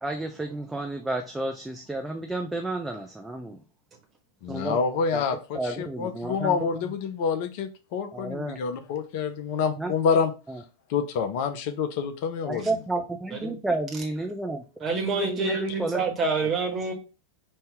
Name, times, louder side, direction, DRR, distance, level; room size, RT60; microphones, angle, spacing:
voice 1, 0.0-3.6 4.5-4.8 5.1-5.2 5.5-6.9 8.1-8.6 9.8-9.9 10.5-10.6 12.5-14.6 14.9-16.0, right 2 dB, 5° right, 3 dB, 0.6 m, -31 dB
voice 2, 4.4-10.3 10.9-12.8, left 6 dB, 45° left, 8 dB, 0.7 m, -27 dB
voice 3, 14.8-16.9, right 4 dB, 25° right, 2 dB, 1.6 m, -27 dB
5.4 x 2.8 x 3.5 m, 0.32 s
figure-of-eight pair, 90°, 0 cm